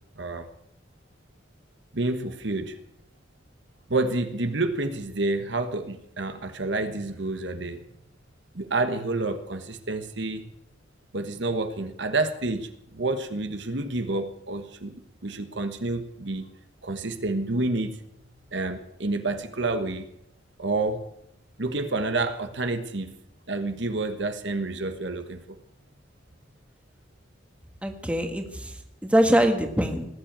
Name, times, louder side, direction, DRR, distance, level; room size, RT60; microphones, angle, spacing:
voice 1, 0.2-0.5 1.9-2.8 3.9-7.8 8.5-10.4 11.1-12.7 12.9-14.9 15.2-16.5 16.8-17.9 18.5-20.1 20.6-21.0 21.6-23.1 23.5-25.6, right 2 dB, 60° right, 8 dB, 1.3 m, -29 dB
voice 2, 27.8-30.1, equal, 5° right, 4 dB, 1.6 m, -23 dB
19.0 x 7.7 x 8.9 m, 0.78 s
head